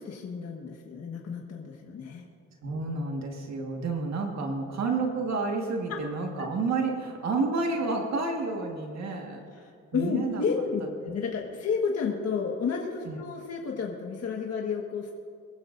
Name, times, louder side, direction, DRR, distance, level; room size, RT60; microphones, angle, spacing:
voice 1, 0.0-2.2 9.5-15.1, left 5 dB, 55° left, -1 dB, 1.5 m, -31 dB
voice 2, 2.6-9.4 9.9-10.4 13.0-13.2, right 3 dB, 60° right, 1 dB, 1.7 m, -30 dB
23.0 x 15.0 x 2.6 m, 2.3 s
cardioid pair, 90°, 30 cm